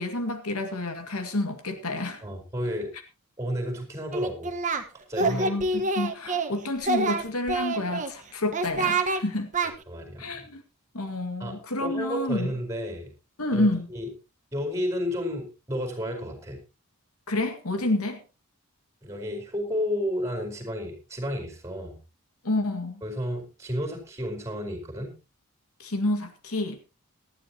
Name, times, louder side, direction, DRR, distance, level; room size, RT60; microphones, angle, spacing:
voice 1, 0.0-2.2 5.2-9.5 10.2-10.6 10.9-12.5 13.4-13.9 17.3-18.2 22.4-23.0 25.8-26.8, left 2 dB, 80° left, 2.1 m, -29 dB
voice 2, 2.2-2.9 3.4-4.5 5.1-5.6 9.9-10.5 11.4-13.1 13.5-14.1 14.5-16.6 19.0-22.0 23.0-25.1, equal, 15° right, 4.6 m, -32 dB
Singing, 4.1-4.8 5.1-6.5 6.8-8.1 8.5-9.2 9.5-9.7, right 3 dB, 35° right, 1.3 m, -26 dB
18.5 x 13.0 x 2.9 m
head